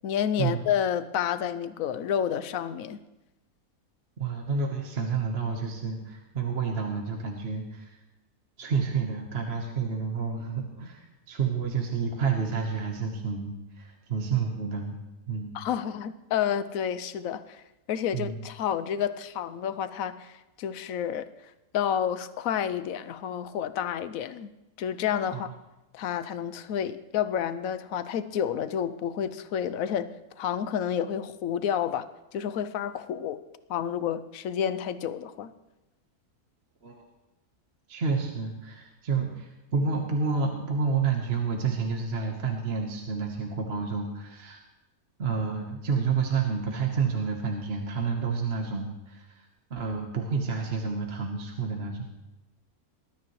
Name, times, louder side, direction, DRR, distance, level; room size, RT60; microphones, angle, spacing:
voice 1, 0.0-3.0 15.5-17.6 17.9-21.3 21.7-24.5 24.8-25.5 25.9-30.1 30.4-32.1 32.3-33.4 33.7-35.5, left 9 dB, 70° left, 13 dB, 1.0 m, -30 dB
voice 2, 4.2-8.0 8.6-15.0 15.3-15.5 18.1-18.3 25.3-25.4 36.8-37.0 37.9-44.6 45.2-52.0, right 5 dB, 45° right, 2 dB, 1.4 m, -29 dB
20.0 x 12.5 x 3.1 m, 1.0 s
omnidirectional pair, 1.6 m